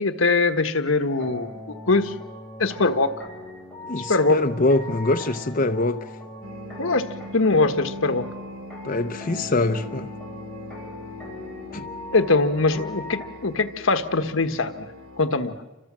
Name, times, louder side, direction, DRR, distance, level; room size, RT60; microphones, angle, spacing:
voice 1, 0.0-2.1 2.6-3.2 3.9-4.4 6.8-7.1 7.3-8.3 12.1-14.9 15.2-15.6, left 3 dB, 75° left, 1.4 m, -22 dB
sound 1, 1.1-13.3, left 1 dB, 5° left, 6.8 m, -40 dB
voice 2, 3.9-6.1 8.8-10.1 11.7-11.9, left 2 dB, 45° left, 0.8 m, -24 dB
sound 2, 6.4-15.3, left 1 dB, 80° right, 1.8 m, -40 dB
29.5 x 25.5 x 7.5 m
head